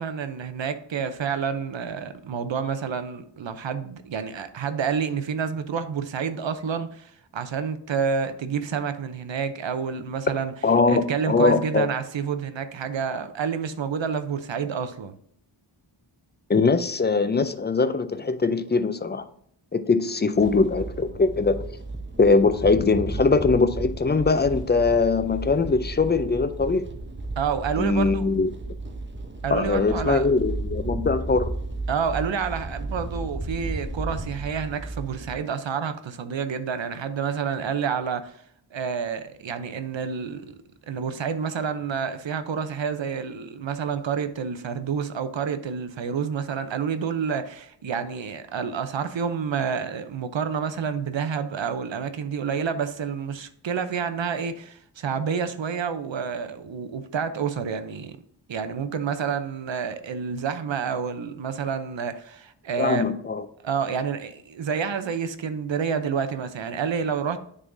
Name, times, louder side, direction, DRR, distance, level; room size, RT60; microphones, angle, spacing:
voice 1, 0.0-10.5 10.9-15.1 27.4-28.3 29.4-30.3 31.9-38.3 38.7-40.5 40.9-58.2 58.5-63.1 63.6-67.4, right 6 dB, 70° right, 0.7 m, -29 dB
voice 2, 10.6-11.9 16.5-19.2 19.7-21.8 22.2-26.8 27.8-28.5 29.5-31.5 62.8-63.4, left 4 dB, 25° left, 0.4 m, -21 dB
sound 1, 20.3-35.4, right 2 dB, 25° right, 0.8 m, -34 dB
9.9 x 3.7 x 2.6 m
wide cardioid pair, 90°, 47 cm